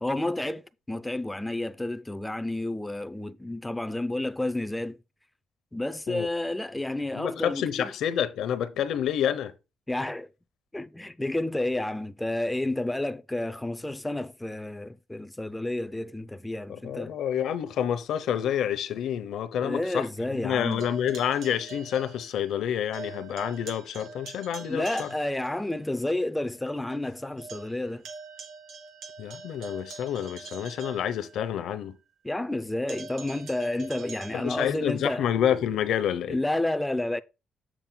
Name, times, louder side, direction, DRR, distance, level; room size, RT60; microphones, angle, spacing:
voice 1, 0.0-5.0 5.7-7.9 9.9-10.3 10.7-17.1 19.6-20.9 24.6-28.0 32.2-35.3 36.3-37.2, left 1 dB, 10° left, 0.5 m, -30 dB
voice 2, 7.1-9.5 16.7-20.1 20.4-25.1 29.2-32.0 34.3-36.4, left 9 dB, 75° left, 0.8 m, -28 dB
sound 1, 20.6-22.7 22.9-25.6 26.0-26.1 26.5-26.6 26.9-31.7 32.9-34.8, right 3 dB, 70° right, 2.5 m, -44 dB
7.4 x 7.1 x 2.2 m
cardioid pair, 90°, 0 cm